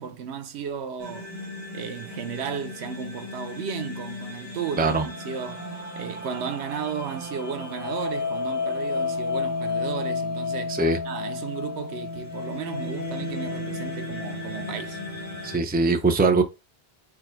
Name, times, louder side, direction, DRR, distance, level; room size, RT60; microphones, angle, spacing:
voice 1, 0.0-1.3 1.7-5.7 6.0-10.8 11.0-15.0, right 7 dB, 90° right, 0.9 m, -34 dB
sound 1, 1.0-15.6, left 3 dB, 15° left, 1.1 m, -32 dB
voice 2, 15.4-16.4, right 3 dB, 15° right, 0.3 m, -21 dB
4.7 x 2.3 x 4.5 m
omnidirectional pair, 1.1 m